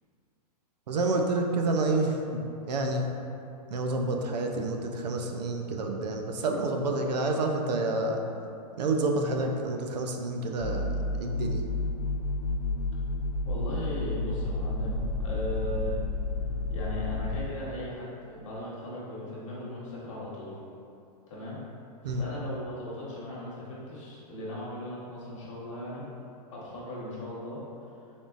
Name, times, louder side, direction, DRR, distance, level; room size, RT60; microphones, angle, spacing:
voice 1, 0.9-3.0 3.7-8.2 8.8-10.9 11.2-11.6 22.0-22.3, right 2 dB, 85° right, 2 dB, 0.5 m, -29 dB
sound 1, 10.6-17.4, left 2 dB, 70° left, 0.5 m, -31 dB
voice 2, 13.4-16.0 16.7-20.6 21.3-21.6 22.1-26.1 26.5-27.6, left 1 dB, 50° left, -7 dB, 1.2 m, -38 dB
4.0 x 3.6 x 2.4 m, 2.6 s
hypercardioid pair, 175°, 20 cm